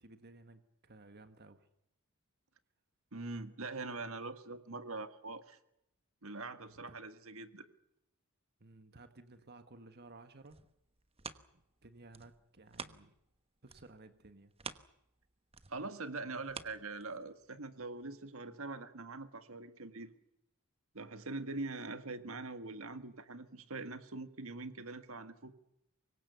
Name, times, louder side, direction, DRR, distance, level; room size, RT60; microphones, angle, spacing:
voice 1, 0.0-1.7 6.6-7.0 8.6-10.6 11.5-13.1 13.6-14.5, right 2 dB, 50° right, 9 dB, 1.6 m, -56 dB
voice 2, 3.1-5.6 6.2-7.7 15.7-20.2 20.9-25.5, right 3 dB, 65° right, 10 dB, 1.8 m, -43 dB
sound 1, 10.2-13.4 13.7-17.5 18.0-18.1, right 5 dB, 25° right, 1.1 m, -50 dB
25.5 x 22.5 x 6.9 m, 0.81 s
head